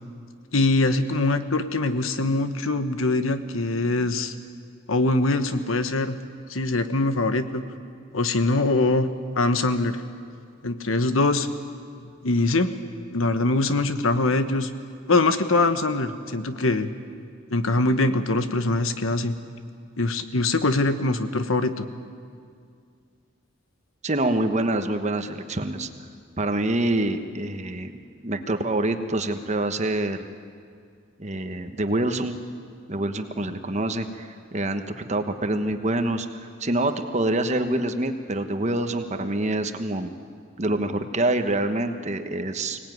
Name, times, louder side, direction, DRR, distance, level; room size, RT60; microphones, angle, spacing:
voice 1, 0.5-4.3 4.9-6.2 6.5-7.6 8.1-9.1 9.4-10.0 10.6-11.5 12.0-12.7 13.1-14.7 15.1-16.9 17.5-19.4 20.0-21.9, left 2 dB, 80° left, 10 dB, 1.3 m, -23 dB
voice 2, 24.0-25.9 26.4-27.9 28.2-30.2 31.2-32.4 32.9-36.3 36.6-40.1 40.6-42.8, right 1 dB, 35° right, 7 dB, 1.2 m, -26 dB
24.5 x 18.5 x 9.4 m, 2.2 s
head